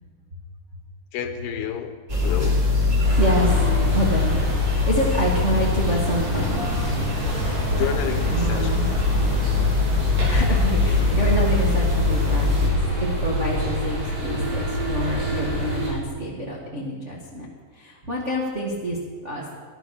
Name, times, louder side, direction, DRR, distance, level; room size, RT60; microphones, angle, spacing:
voice 1, 1.1-1.9 2.2-2.6 7.8-8.7, left 10 dB, 80° left, 8 dB, 2.8 m, -29 dB
sound 1, 2.1-12.7, left 4 dB, 25° right, 1.8 m, -22 dB
sound 2, 3.0-15.9, equal, 75° right, 7.6 m, -27 dB
voice 2, 3.2-3.6 3.9-7.1 8.3-8.9 10.3-17.5 17.7-19.0 19.2-19.4, right 1 dB, 45° right, -4 dB, 0.9 m, -27 dB
12.5 x 11.5 x 6.6 m, 1.5 s
omnidirectional pair, 4.9 m